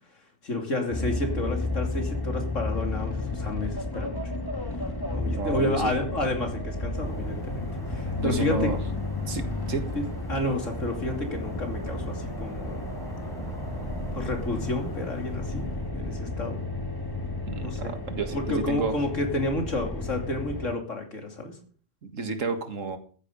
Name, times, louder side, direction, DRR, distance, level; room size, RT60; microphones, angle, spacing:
voice 1, 0.4-4.2 5.1-8.7 9.9-12.9 14.1-16.6 17.6-17.9 18.3-21.6, left 2 dB, 75° left, 4 dB, 3.2 m, -30 dB
sound 1, 0.9-20.7, left 2 dB, 20° left, 1.5 m, -32 dB
voice 2, 5.4-5.9 8.2-8.8 9.3-9.8 17.5-19.0 22.0-23.0, right 4 dB, 80° right, 8 dB, 2.1 m, -31 dB
sound 2, 7.0-15.9, equal, ahead, 4.4 m, -42 dB
14.0 x 10.0 x 5.4 m, 0.42 s
omnidirectional pair, 1.3 m